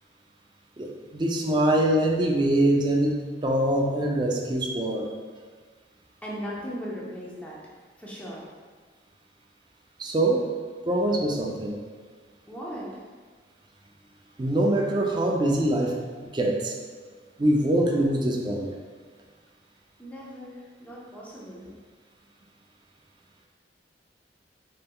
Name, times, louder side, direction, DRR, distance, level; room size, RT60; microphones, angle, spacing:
voice 1, 0.8-3.2 3.4-5.1 10.0-10.4 10.9-11.8 14.4-16.0 16.3-16.7 17.4-18.7, right 1 dB, 25° right, 0 dB, 0.4 m, -23 dB
voice 2, 6.2-7.6 8.0-8.5 12.5-13.0 20.0-21.7, equal, 10° left, -6 dB, 0.7 m, -38 dB
4.3 x 3.5 x 2.2 m, 1.5 s
head